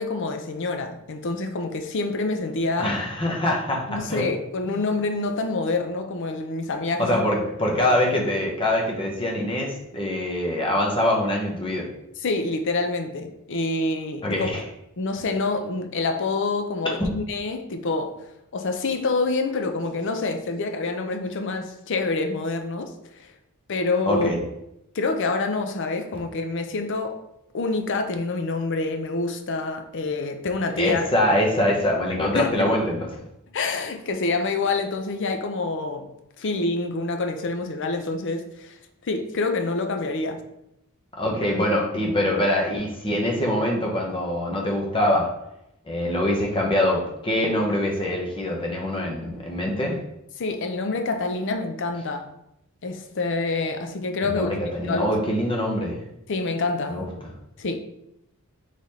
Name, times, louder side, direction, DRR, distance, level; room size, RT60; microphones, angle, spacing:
voice 1, 0.0-3.0 3.9-7.2 12.2-14.5 15.0-18.1 18.5-23.3 23.7-24.3 24.9-27.2 27.5-31.1 32.3-32.7 33.5-36.1 36.4-38.8 39.0-40.4 50.4-52.3 52.8-54.5 54.8-55.1 56.3-57.0 57.6-57.8, left 3 dB, 55° left, 6 dB, 0.6 m, -27 dB
voice 2, 2.8-4.3 7.0-11.9 14.2-14.6 17.0-17.1 24.1-24.4 30.7-33.2 41.2-45.3 45.9-50.0 54.2-56.0 56.9-57.1, left 1 dB, 25° left, -1 dB, 0.9 m, -24 dB
3.9 x 3.3 x 4.1 m, 0.82 s
head